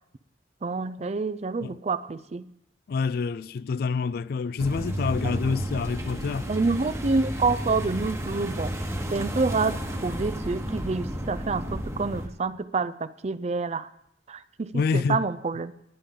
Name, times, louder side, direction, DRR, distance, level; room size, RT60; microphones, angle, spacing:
voice 1, 0.6-2.5 6.5-8.7 9.1-13.9 14.3-15.7, right 4 dB, 40° right, 0.5 m, -28 dB
voice 2, 2.9-6.5 14.7-15.3, left 5 dB, 60° left, 0.3 m, -27 dB
sound 1, 4.6-12.3, equal, 15° right, 1.1 m, -32 dB
20.0 x 8.7 x 3.8 m
head